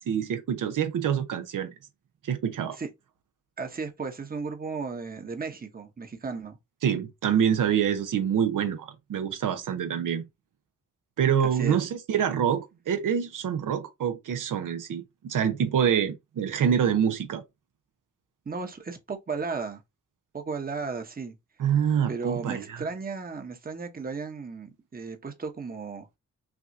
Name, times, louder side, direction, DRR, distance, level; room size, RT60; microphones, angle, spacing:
voice 1, 0.1-1.7 2.2-2.8 6.8-10.2 11.2-17.4 21.6-22.9, right 8 dB, 85° right, 0.8 m, -26 dB
voice 2, 3.6-6.6 7.3-7.4 11.4-11.8 18.5-19.8 20.3-21.3 22.1-26.1, right 4 dB, 30° right, 0.9 m, -35 dB
5.9 x 2.4 x 2.6 m
wide cardioid pair, 95°, 31 cm